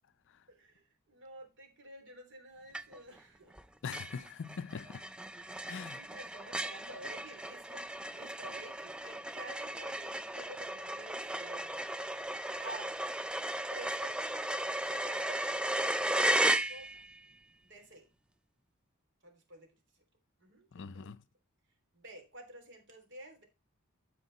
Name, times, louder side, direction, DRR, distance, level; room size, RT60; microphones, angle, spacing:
voice 1, 0.5-3.6 5.4-11.9 12.2-12.3 12.6-13.0 13.7-16.9 17.6-18.0 19.2-19.7 20.4-21.0 21.9-23.4, right 1 dB, 55° right, 3.2 m, -51 dB
sound 1, 2.7-3.2 3.5-3.6 3.9-17.2, right 1 dB, 5° right, 0.4 m, -35 dB
voice 2, 3.8-5.1 5.7-6.0 20.7-21.2, left 6 dB, 60° left, 0.5 m, -42 dB
12.5 x 4.6 x 4.0 m
head